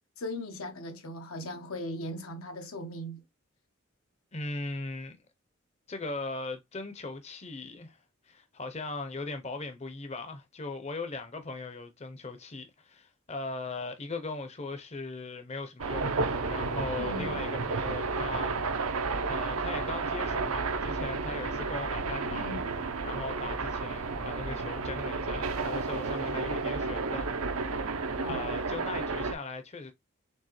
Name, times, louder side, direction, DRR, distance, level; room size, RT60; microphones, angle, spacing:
voice 1, 0.2-3.2 17.0-17.5 22.3-22.6 28.2-28.6, left 1 dB, 85° left, 1.0 m, -38 dB
voice 2, 4.3-5.2 5.9-18.8 19.3-22.5 23.0-27.7 28.3-29.9, left 3 dB, 30° left, 0.6 m, -39 dB
sound 1, 15.8-29.3, right 3 dB, 90° right, 0.8 m, -32 dB
4.5 x 3.6 x 3.0 m
head